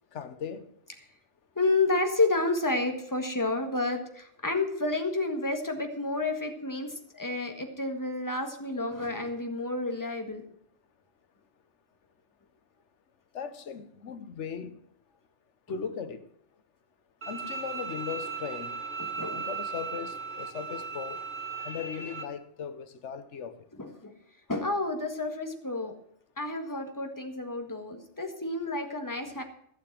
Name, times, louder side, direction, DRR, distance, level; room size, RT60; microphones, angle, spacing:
voice 1, 0.1-0.7 13.3-14.8 15.7-16.3 17.3-18.8 19.3-21.2 21.6-23.5, left 7 dB, 85° left, 1.2 m, -38 dB
voice 2, 1.6-10.4 19.0-19.5 23.8-24.1 24.5-25.9 26.4-29.4, left 2 dB, 15° left, 1.7 m, -30 dB
Bowed string instrument, 17.2-22.2, right 4 dB, 60° right, 1.7 m, -37 dB
15.5 x 6.9 x 7.4 m
omnidirectional pair, 1.2 m